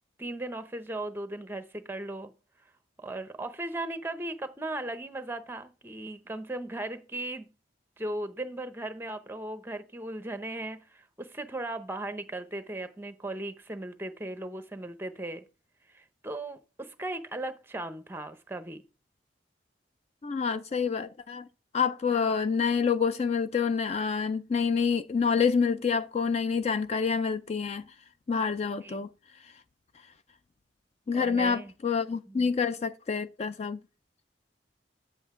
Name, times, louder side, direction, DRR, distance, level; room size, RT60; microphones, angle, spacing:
voice 1, 0.2-2.3 3.0-7.5 8.0-15.4 15.9-18.8 28.8-29.0 31.1-31.7 32.3-32.5, right 1 dB, 10° right, 0.8 m, -37 dB
voice 2, 20.2-21.5 21.7-27.9 28.3-29.1 31.1-33.8, left 5 dB, 35° left, 0.3 m, -27 dB
8.6 x 7.8 x 3.7 m
head